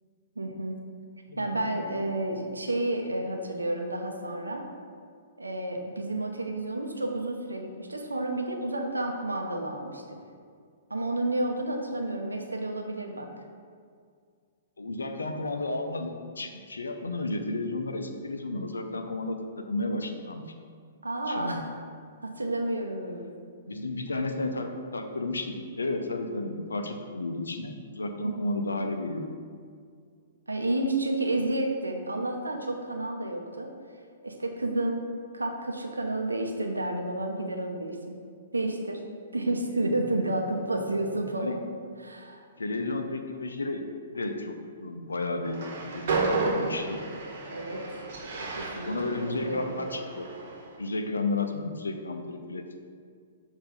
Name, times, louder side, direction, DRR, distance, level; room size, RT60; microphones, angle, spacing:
voice 1, 0.4-0.8 1.4-4.6 5.4-10.2 10.9-13.3 21.0-21.7 22.2-23.3 28.2-28.4 30.5-33.7 34.2-35.0 35.3-38.2 38.5-39.0 39.3-41.6 42.0-42.4 47.5-47.8 48.6-48.9 49.4-49.7, right 1 dB, 80° right, 3 dB, 0.7 m, -30 dB
voice 2, 1.3-1.7 14.8-20.4 21.2-21.6 23.7-29.3 41.4-41.6 42.6-43.8 44.1-45.6 45.9-47.0 48.9-50.3 50.8-52.6, left 2 dB, 75° left, 5 dB, 0.5 m, -32 dB
Train, 45.4-50.7, right 3 dB, 50° right, 1.1 m, -32 dB
6.6 x 2.7 x 5.2 m, 2.1 s
figure-of-eight pair, 115°, 0 cm